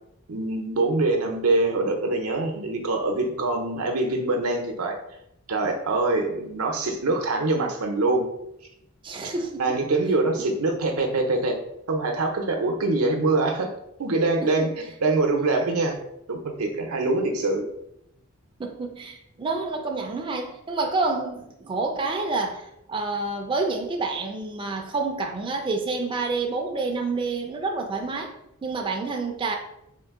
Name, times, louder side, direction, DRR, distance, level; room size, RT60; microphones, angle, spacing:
voice 1, 0.3-5.0 5.5-8.3 9.6-11.6 11.9-13.7 14.0-16.0 16.3-17.7, right 2 dB, 90° right, 3 dB, 0.6 m, -24 dB
voice 2, 9.0-9.8 14.4-14.7 18.6-28.3 28.6-29.6, right 3 dB, 25° right, 2 dB, 0.4 m, -28 dB
3.7 x 2.5 x 3.6 m, 0.80 s
head